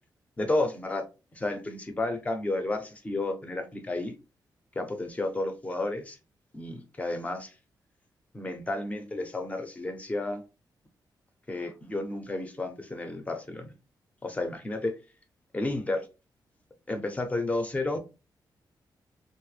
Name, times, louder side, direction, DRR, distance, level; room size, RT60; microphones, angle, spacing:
voice 1, 0.4-1.0 1.3-4.2 4.7-6.2 6.5-7.5 8.3-10.4 11.5-13.7 14.2-15.0 15.5-16.1 16.9-18.0, left 2 dB, 20° left, 0.6 m, -31 dB
3.5 x 2.1 x 3.2 m
wide cardioid pair, 165°, 8 cm